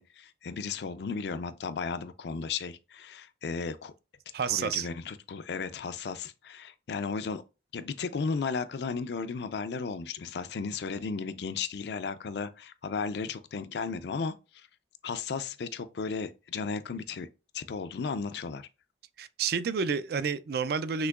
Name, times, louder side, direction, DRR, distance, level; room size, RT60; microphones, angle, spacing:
voice 1, 0.0-3.9 4.4-7.4 7.7-14.7 15.0-17.3 17.5-18.7, left 5 dB, 65° left, 0.4 m, -35 dB
voice 2, 4.3-4.9 19.2-21.1, right 6 dB, 55° right, 0.3 m, -29 dB
6.1 x 2.9 x 2.3 m
head